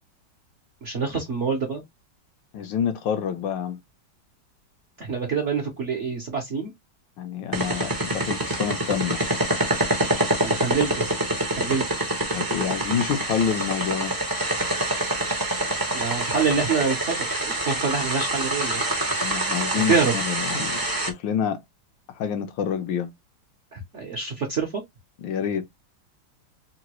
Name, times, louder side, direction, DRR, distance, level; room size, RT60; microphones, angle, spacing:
voice 1, 0.8-1.8 5.0-6.7 10.4-11.1 11.5-11.8 15.9-18.8 19.9-20.1 20.5-20.7 23.7-24.8, right 5 dB, 55° right, 0.8 m, -26 dB
voice 2, 2.5-3.8 7.2-9.2 12.3-14.1 19.2-21.6 22.1-23.1 25.2-25.7, left 8 dB, 70° left, 1.2 m, -27 dB
sound 1, 7.5-21.1, right 1 dB, 25° right, 0.4 m, -26 dB
3.8 x 2.2 x 2.9 m
omnidirectional pair, 2.3 m